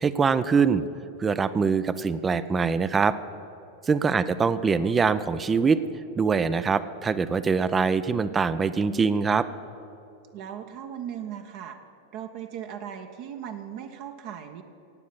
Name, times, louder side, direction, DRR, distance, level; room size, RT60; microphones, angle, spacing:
voice 1, 0.0-0.8 1.2-3.2 3.8-5.8 6.2-9.5, right 5 dB, 20° right, 14 dB, 0.5 m, -23 dB
voice 2, 10.3-11.8 12.1-14.6, right 9 dB, 45° right, 5 dB, 0.9 m, -38 dB
17.0 x 8.4 x 8.3 m, 2.9 s
figure-of-eight pair, 90°, 0 cm